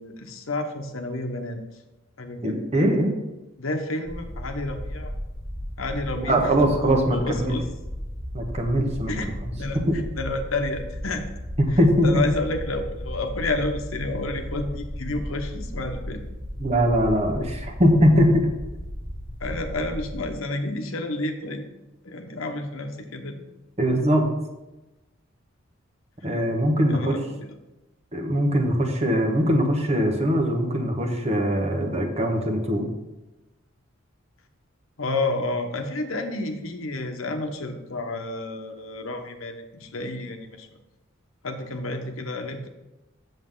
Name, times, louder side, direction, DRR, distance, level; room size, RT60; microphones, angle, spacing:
voice 1, 0.0-1.6 2.2-2.6 3.6-5.1 5.8-6.7 7.1-7.7 9.1-9.8 10.1-11.2 11.7-16.2 19.4-21.6 22.0-23.4 26.8-27.5 35.0-40.7 41.4-42.7, left 2 dB, 85° left, 6 dB, 1.0 m, -30 dB
voice 2, 2.4-3.1 6.1-7.6 8.3-9.1 9.9-10.0 11.8-12.2 16.6-18.5 23.8-24.3 26.2-27.2 28.1-32.9, equal, 30° right, 3 dB, 1.1 m, -21 dB
sound 1, 4.1-20.3, equal, 10° left, 2.0 m, -35 dB
8.0 x 7.3 x 3.8 m, 1.0 s
head